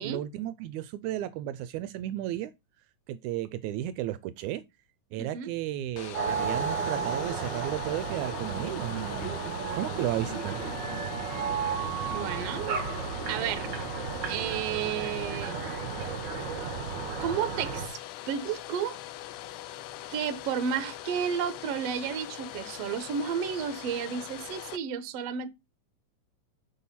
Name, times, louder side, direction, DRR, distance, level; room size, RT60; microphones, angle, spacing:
voice 1, 0.0-2.5 3.1-4.6 5.1-9.4 9.7-10.6, right 13 dB, 80° right, 1.9 m, -33 dB
voice 2, 5.2-5.5 12.1-12.9 13.3-13.7 14.3-15.6 17.2-18.0 18.3-19.0 20.1-25.5, right 8 dB, 65° right, 1.8 m, -32 dB
Domestic sounds home sounds, 5.9-24.8, left 14 dB, 85° left, 2.1 m, -42 dB
sound 1, 6.1-17.9, right 6 dB, 45° right, 1.7 m, -33 dB
sound 2, 6.2-8.8, left 4 dB, 65° left, 3.8 m, -56 dB
6.6 x 5.5 x 4.2 m
omnidirectional pair, 3.5 m